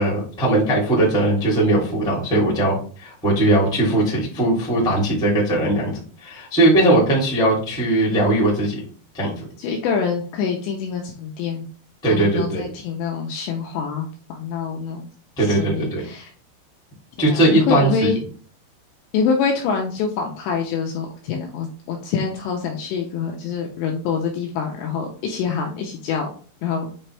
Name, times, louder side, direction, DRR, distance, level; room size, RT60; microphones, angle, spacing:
voice 1, 0.0-5.9 6.2-8.8 9.1-9.3 12.0-12.7 15.4-16.0 17.2-18.1, right 1 dB, ahead, -4 dB, 0.9 m, -19 dB
voice 2, 9.6-11.7 12.1-15.1 15.4-16.3 17.2-18.2 19.1-26.3 26.6-26.9, left 6 dB, 80° left, 1 dB, 2.6 m, -25 dB
8.7 x 3.5 x 3.3 m, 0.42 s
omnidirectional pair, 5.8 m